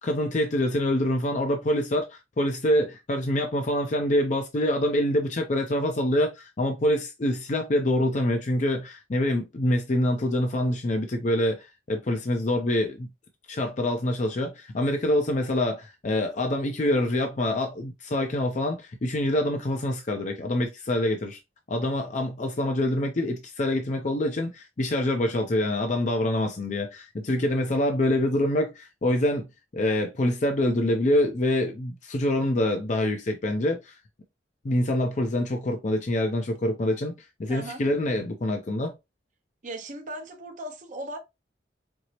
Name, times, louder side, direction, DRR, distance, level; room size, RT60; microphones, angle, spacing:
voice 1, 0.0-13.1 13.5-21.4 21.7-29.5 29.7-33.9 34.6-37.1 37.4-38.9, left 1 dB, 40° left, 0.5 m, -25 dB
voice 2, 37.5-37.8 39.6-41.2, right 1 dB, 45° right, 0.7 m, -37 dB
4.4 x 2.0 x 2.7 m
head